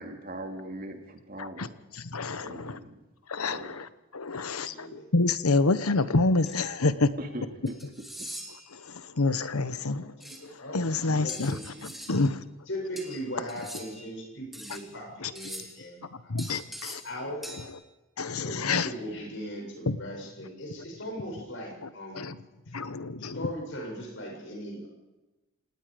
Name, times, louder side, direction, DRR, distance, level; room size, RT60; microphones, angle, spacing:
voice 1, 0.0-1.7 2.4-3.0 3.5-3.7 7.2-7.7 8.2-8.3, right 1 dB, 40° right, 4 dB, 2.6 m, -40 dB
voice 2, 1.9-2.8 3.3-3.9 4.1-7.2 8.7-10.1 10.5-12.4 15.2-15.3 16.1-17.0 17.5-17.6 18.2-18.9 19.9-20.0 21.8-22.4 22.7-23.5, left 3 dB, 90° left, 14 dB, 1.1 m, -28 dB
voice 3, 4.5-5.1 9.9-10.3 10.6-10.8 11.1-11.9 12.7-16.3 17.0-17.4 18.3-22.3 22.7-22.8 23.2-24.9, equal, 60° left, 1 dB, 7.5 m, -39 dB
sound 1, 6.5-6.6 7.7-8.7 10.2-10.4 11.3-12.2 13.0-14.1 14.5-14.9 15.3-15.8 16.4-17.2 17.4-17.7, right 1 dB, ahead, 2.6 m, -43 dB
28.0 x 18.5 x 5.2 m, 1.1 s
head